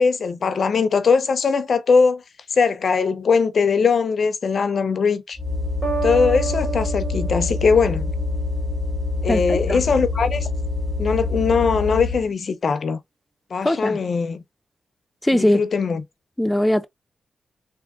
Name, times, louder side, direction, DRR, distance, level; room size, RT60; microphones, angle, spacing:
voice 1, 0.0-2.2 2.5-5.4 6.0-8.1 9.2-10.5 11.0-13.0 13.5-14.4 15.3-16.0, left 5 dB, 60° left, 0.5 m, -20 dB
sound 1, 5.4-12.3, left 3 dB, 20° right, 1.6 m, -26 dB
sound 2, 5.8-8.6, right 6 dB, 65° right, 2.2 m, -30 dB
voice 2, 9.3-9.8 13.6-14.0 15.2-15.6 16.4-16.9, left 1 dB, 10° left, 0.5 m, -20 dB
3.6 x 2.6 x 3.5 m
wide cardioid pair, 105°, 0 cm